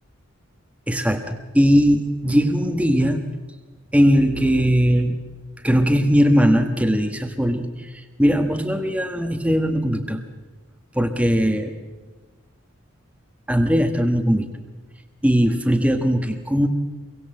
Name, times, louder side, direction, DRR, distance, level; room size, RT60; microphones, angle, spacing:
voice 1, 0.9-3.2 3.9-5.2 5.6-7.9 8.2-10.2 10.9-11.7 13.5-14.5 15.2-16.7, equal, 5° right, 5 dB, 1.4 m, -19 dB
25.5 x 23.0 x 7.8 m, 1.2 s
head